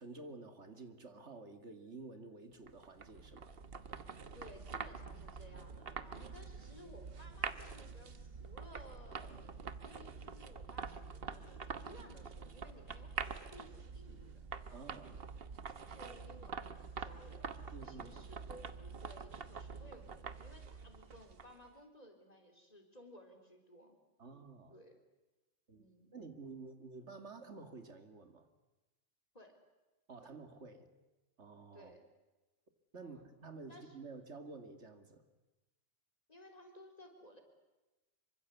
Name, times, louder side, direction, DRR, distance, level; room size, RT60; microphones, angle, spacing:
voice 1, 0.0-3.5 14.7-15.2 17.7-18.1 20.9-21.0 24.2-24.7 25.7-28.5 30.1-30.9 31.4-31.9 32.9-35.3, right 3 dB, 80° right, 7 dB, 2.5 m, -51 dB
sound 1, 2.7-21.7, right 5 dB, 55° right, 1.3 m, -46 dB
voice 2, 4.3-9.5 9.7-14.3 15.9-24.0 24.7-25.0 25.7-26.2 29.3-29.5 30.2-30.3 31.7-32.0 33.0-33.2 33.7-33.9 36.3-37.4, equal, 35° left, 4 dB, 4.0 m, -58 dB
26.0 x 24.5 x 8.4 m, 1.1 s
omnidirectional pair, 1.2 m